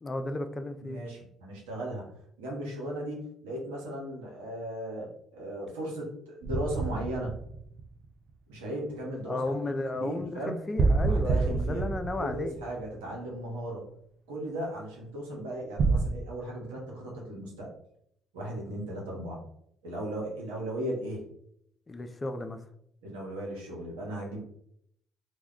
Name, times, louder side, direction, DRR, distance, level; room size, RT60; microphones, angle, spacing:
voice 1, 0.0-1.0 9.3-12.6 21.9-22.6, left 2 dB, 30° left, 8 dB, 0.4 m, -34 dB
voice 2, 0.8-2.1 2.4-5.1 5.3-7.4 8.5-10.5 11.0-11.8 12.2-13.9 14.3-17.7 18.3-19.4 19.8-21.2 23.0-24.4, right 1 dB, 85° right, -2 dB, 0.8 m, -36 dB
sound 1, 6.4-8.3 10.8-13.3 15.8-16.0, right 3 dB, 55° right, 0.4 m, -27 dB
2.2 x 2.2 x 3.5 m, 0.70 s
hypercardioid pair, 55°, 0 cm